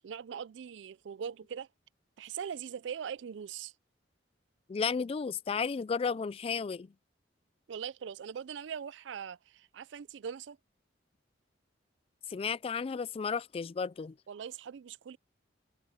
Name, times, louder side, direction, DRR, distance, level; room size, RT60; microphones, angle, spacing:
voice 1, 0.0-1.7 2.2-3.7 7.7-10.6 14.3-15.2, right 7 dB, 75° right, 0.4 m, -41 dB
voice 2, 4.7-6.9 12.3-14.1, left 5 dB, 30° left, 0.3 m, -33 dB
head